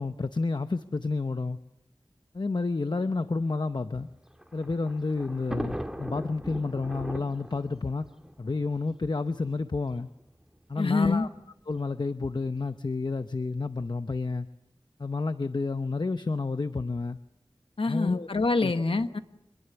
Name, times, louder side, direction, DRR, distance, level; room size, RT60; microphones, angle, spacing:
voice 1, 0.0-1.6 2.3-4.1 4.5-8.1 8.4-10.1 10.7-11.3 11.7-14.5 15.0-17.2 17.9-18.3 18.6-18.7, left 3 dB, 50° left, 0.8 m, -30 dB
Thunder, 4.1-9.4 10.2-10.3 10.5-10.6 11.7-12.0, equal, 5° right, 1.7 m, -39 dB
voice 2, 10.8-11.3 17.8-19.2, left 3 dB, 80° left, 1.2 m, -26 dB
26.0 x 21.0 x 7.0 m
wide cardioid pair, 55°, 9 cm